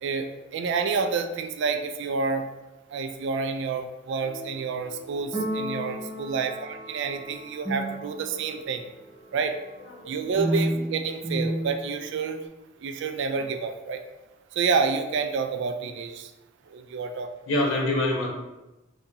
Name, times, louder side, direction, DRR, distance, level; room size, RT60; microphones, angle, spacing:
voice 1, 0.0-2.5 2.9-8.8 9.3-9.6 10.1-12.4 12.8-14.0 14.5-16.3 16.7-17.3, right 5 dB, 65° right, 7 dB, 0.3 m, -29 dB
sound 1, 4.2-8.6 10.4-12.5, right 1 dB, ahead, 0.7 m, -32 dB
voice 2, 9.9-10.8 17.5-18.3, left 1 dB, 85° left, -2 dB, 0.8 m, -27 dB
2.8 x 2.7 x 3.7 m, 1.0 s
head